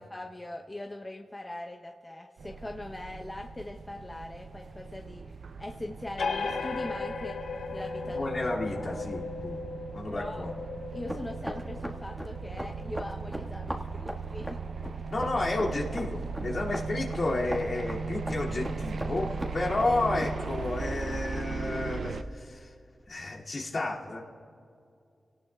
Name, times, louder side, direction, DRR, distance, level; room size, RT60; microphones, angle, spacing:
voice 1, 0.0-5.2 5.6-8.3 10.1-10.4 10.9-14.6 14.9-15.1, left 1 dB, 25° left, 1 dB, 0.8 m, -41 dB
sound 1, 2.4-22.2, right 4 dB, 80° right, 0.6 m, -38 dB
sound 2, 6.2-13.4, left 4 dB, 80° left, 0.7 m, -37 dB
voice 2, 8.1-9.6 9.9-10.5 15.1-22.7 23.1-24.2, left 2 dB, 65° left, -4 dB, 2.4 m, -31 dB
sound 3, 10.9-20.8, equal, 10° right, 1.6 m, -40 dB
27.5 x 18.0 x 2.3 m, 2.4 s
cardioid pair, 45°, 0 cm